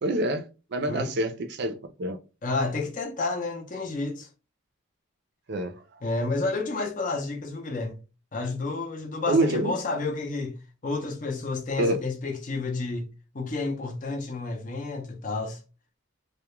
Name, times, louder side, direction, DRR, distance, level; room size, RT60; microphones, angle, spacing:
voice 1, 0.0-0.4 0.7-2.2 5.5-5.8 9.3-9.7 11.8-12.0, right 2 dB, 50° right, 0.4 m, -26 dB
voice 2, 2.4-4.3 6.0-8.0 8.3-10.5 10.8-13.1 13.3-15.6, left 3 dB, 35° left, 0.5 m, -30 dB
2.3 x 2.1 x 2.9 m
head